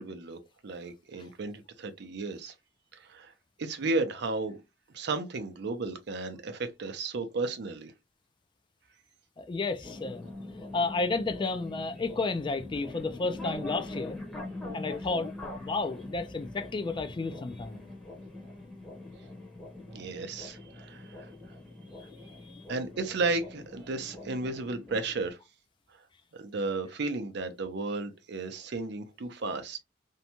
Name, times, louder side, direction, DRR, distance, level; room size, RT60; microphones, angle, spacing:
voice 1, 0.0-2.5 2.9-3.3 3.6-4.6 4.9-7.9 19.9-21.3 22.7-25.4 26.3-29.8, right 3 dB, 65° right, 0.5 m, -34 dB
voice 2, 9.4-10.3 10.7-14.2 14.7-15.3 15.6-17.8 22.5-22.6, left 3 dB, 25° left, 0.3 m, -32 dB
sound 1, 9.8-25.3, left 2 dB, ahead, 0.8 m, -43 dB
2.6 x 2.2 x 2.8 m
head